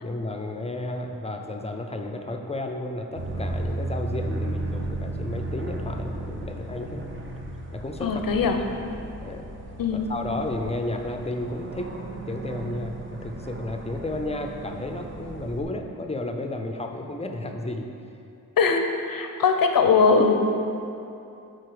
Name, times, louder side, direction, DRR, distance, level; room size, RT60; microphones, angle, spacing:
voice 1, 0.0-7.1 7.7-8.3 9.2-9.5 9.9-11.9 12.3-17.9, left 2 dB, 20° left, 4 dB, 0.5 m, -32 dB
sound 1, 3.1-15.6, right 2 dB, 35° right, 0.7 m, -34 dB
voice 2, 8.0-8.6 9.8-10.0 18.6-20.3, left 5 dB, 80° left, 5 dB, 0.7 m, -21 dB
9.2 x 4.1 x 5.0 m, 2.7 s
wide cardioid pair, 145°, 34 cm